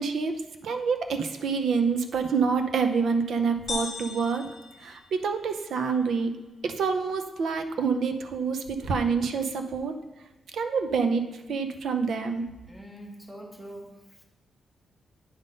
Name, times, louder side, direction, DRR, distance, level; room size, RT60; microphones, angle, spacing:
voice 1, 0.0-4.4 4.8-6.3 6.6-9.9 10.5-12.5, right 5 dB, 65° right, 7 dB, 0.7 m, -27 dB
sound 1, 3.7-5.6, left 5 dB, 45° left, 0.9 m, -37 dB
voice 2, 12.7-14.2, equal, ahead, 0 dB, 1.1 m, -44 dB
9.6 x 3.8 x 5.2 m, 1.1 s
wide cardioid pair, 165°, 0 cm